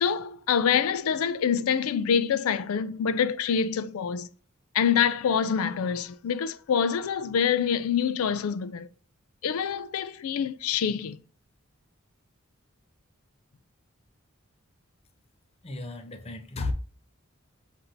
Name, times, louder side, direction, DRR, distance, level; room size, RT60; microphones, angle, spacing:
voice 1, 0.0-4.3 4.7-8.9 9.4-11.2, left 7 dB, 90° left, 0.4 m, -26 dB
voice 2, 15.6-16.7, left 2 dB, 30° left, 0.5 m, -34 dB
7.6 x 2.6 x 2.6 m
head